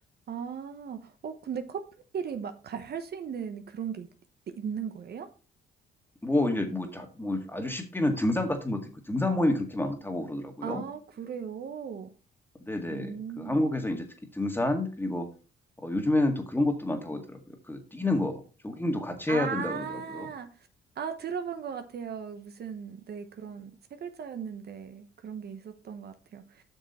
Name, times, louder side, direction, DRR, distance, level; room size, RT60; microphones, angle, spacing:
voice 1, 0.3-1.8 2.1-4.1 4.5-5.3 10.6-12.1 12.9-13.6 19.3-20.7 21.0-23.7 24.0-26.6, right 7 dB, 55° right, 8 dB, 1.0 m, -37 dB
voice 2, 6.2-10.8 12.6-14.1 14.3-15.3 15.8-19.9 20.1-20.3, left 1 dB, 10° left, 5 dB, 1.9 m, -29 dB
8.0 x 6.1 x 4.2 m, 0.36 s
cardioid pair, 90°, 20 cm